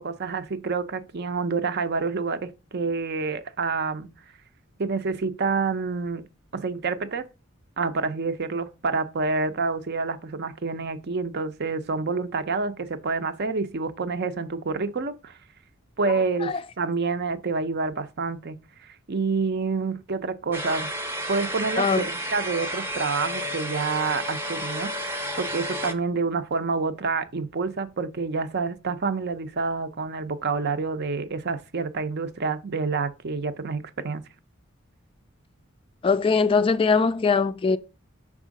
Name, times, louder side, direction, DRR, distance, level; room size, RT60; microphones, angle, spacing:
voice 1, 0.0-4.1 4.8-6.2 6.5-7.2 7.8-15.3 16.0-18.6 18.8-20.9 21.3-34.2, right 4 dB, 55° right, 0.6 m, -28 dB
sound 1, 20.5-25.9, equal, 10° right, 0.7 m, -31 dB
voice 2, 36.0-37.8, left 5 dB, 25° left, 0.3 m, -21 dB
5.5 x 3.6 x 5.1 m
head